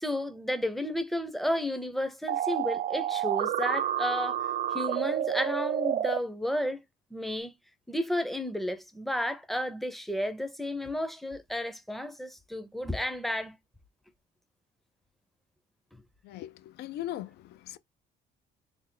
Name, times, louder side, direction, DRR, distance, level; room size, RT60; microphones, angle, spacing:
voice 1, 0.0-4.4 4.7-6.8 7.1-7.5 7.9-13.5 15.9-16.0, left 1 dB, ahead, 0.6 m, -32 dB
sound 1, 2.3-6.2, right 11 dB, 50° right, 0.4 m, -29 dB
voice 2, 16.2-17.8, left 13 dB, 75° left, 0.5 m, -39 dB
3.4 x 2.1 x 3.7 m
cardioid pair, 110°, 17 cm